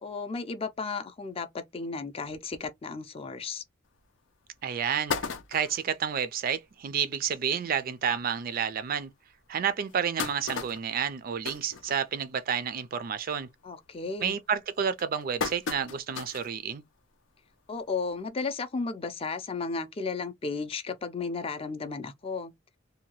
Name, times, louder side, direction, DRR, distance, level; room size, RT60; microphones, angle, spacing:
voice 1, 0.0-3.6 13.6-14.4 17.7-22.5, left 4 dB, 30° left, 0.4 m, -34 dB
sound 1, 4.0-4.1 4.5-4.6 4.8-5.9 6.5-6.6 6.9-7.0 7.3-7.5 8.2-8.3 8.8-8.9 9.6-12.5 12.8-13.2 13.5-13.9 14.5-16.6 17.0-17.1 18.3-18.4, left 5 dB, 85° left, 0.5 m, -36 dB
voice 2, 4.6-5.1 5.5-9.1 9.5-13.5 14.2-16.8, right 7 dB, 50° right, 0.4 m, -30 dB
2.7 x 2.2 x 2.9 m
head